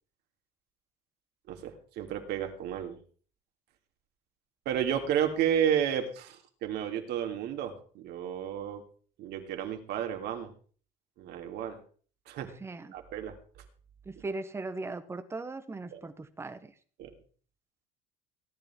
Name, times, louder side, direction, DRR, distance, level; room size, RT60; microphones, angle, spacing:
voice 1, 1.5-3.0 4.6-8.8 9.2-10.5 11.2-11.8 12.3-12.5 12.9-13.3 14.2-14.3 15.9-16.0 17.0-17.1, right 9 dB, 60° right, 4 dB, 3.1 m, -32 dB
voice 2, 12.6-12.9 14.0-16.7, right 3 dB, 15° right, 10 dB, 1.4 m, -38 dB
17.5 x 11.0 x 4.6 m, 0.44 s
cardioid pair, 145°, 19 cm